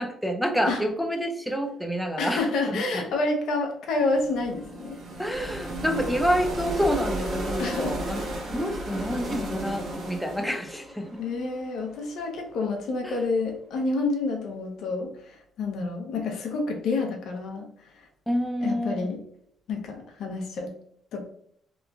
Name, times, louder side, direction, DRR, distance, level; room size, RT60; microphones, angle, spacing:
voice 1, 0.0-3.0 5.2-8.2 8.5-11.2 13.0-13.2 18.3-19.1, equal, ahead, 4 dB, 0.4 m, -28 dB
voice 2, 2.2-5.0 7.6-8.2 11.2-18.1 18.6-19.2 19.7-20.8 21.1-21.3, left 3 dB, 80° left, 2 dB, 0.6 m, -29 dB
sound 1, 4.0-12.0, right 1 dB, 75° right, 0.9 m, -34 dB
2.9 x 2.4 x 2.3 m, 0.68 s
cardioid pair, 90°, 0 cm